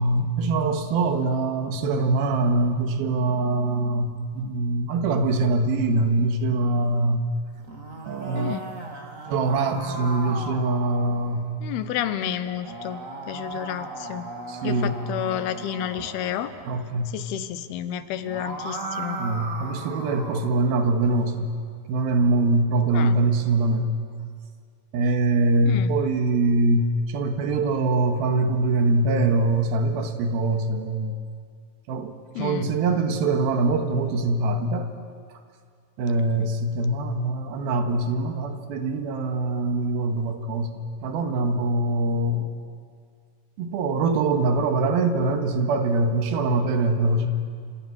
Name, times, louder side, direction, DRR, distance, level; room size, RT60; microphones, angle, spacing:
voice 1, 0.0-7.2 8.0-8.5 9.3-11.5 14.5-15.0 16.0-16.1 16.7-17.1 19.2-21.5 21.9-23.9 24.9-31.1 31.9-34.9 36.0-42.5 43.6-47.3, right 2 dB, 75° right, 5 dB, 3.4 m, -23 dB
sound 1, 7.5-11.4 12.4-16.6 18.0-20.5, right 3 dB, 25° right, 2.2 m, -37 dB
voice 2, 11.6-14.3 14.6-16.5 17.1-19.2 22.9-23.2 25.7-25.9 32.3-32.7 36.4-36.5, left 10 dB, 90° left, 11 dB, 3.0 m, -30 dB
28.5 x 27.5 x 6.3 m, 2.1 s
omnidirectional pair, 4.4 m